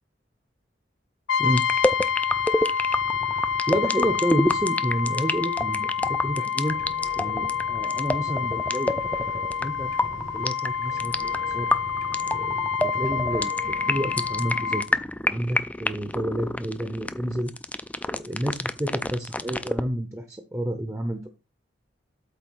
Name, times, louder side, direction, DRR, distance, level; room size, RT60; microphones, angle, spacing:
Brass instrument, 1.3-14.9, left 7 dB, 80° left, 0.5 m, -28 dB
sound 1, 1.5-19.9, left 1 dB, 10° left, 0.3 m, -28 dB
voice 1, 3.7-6.8 7.2-8.9 9.6-9.9 10.3-11.7 12.3-12.7 13.0-17.5 18.1-21.3, equal, 15° right, 5 dB, 0.7 m, -29 dB
sound 2, 6.6-8.5 8.7-10.6 10.8-12.7 12.9-14.6, right 1 dB, 60° left, 1.1 m, -45 dB
8.3 x 3.4 x 6.1 m, 0.29 s
head